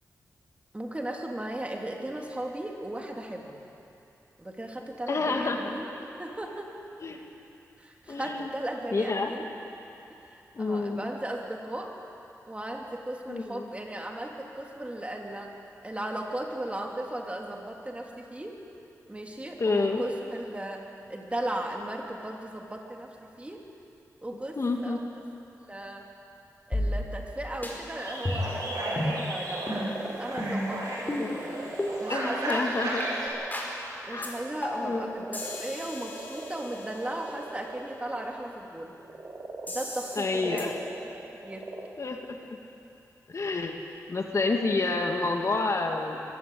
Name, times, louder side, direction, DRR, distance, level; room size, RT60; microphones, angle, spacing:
voice 1, 0.7-3.6 4.4-6.7 7.8-9.5 10.1-12.0 12.5-15.5 15.8-18.6 19.1-23.7 24.2-25.0 25.7-26.1 26.7-29.6 30.2-31.6 32.0-32.6 34.1-38.9 39.7-41.0 41.4-41.7, right 1 dB, 20° right, 1 dB, 3.1 m, -36 dB
voice 2, 5.1-5.7 7.0-7.2 8.1-8.5 8.9-9.3 10.5-11.1 13.3-13.7 19.6-20.0 24.6-25.0 31.2-31.4 32.1-33.0 34.1-34.3 34.8-35.2 40.2-40.7 42.0-42.2 43.3-43.8 44.1-46.2, left 3 dB, 50° left, 3 dB, 2.1 m, -29 dB
sound 1, 26.7-27.3 27.6-27.7 28.2-28.6 29.0-29.2 29.7-29.8 30.4-30.7 31.1-31.2 31.8-31.9 32.5-32.6 33.0-33.1 33.5-33.7 34.2-34.3 34.6-34.9 35.3-37.2 39.7-40.2 40.6-40.7, left 1 dB, 30° left, 5.3 m, -33 dB
sound 2, 28.0-38.4 38.8-41.9, right 2 dB, 50° right, 3.0 m, -42 dB
sound 3, 28.0-33.3, right 1 dB, 90° right, 7.0 m, -34 dB
22.5 x 16.0 x 8.6 m, 2.8 s
cardioid pair, 65°, 6 cm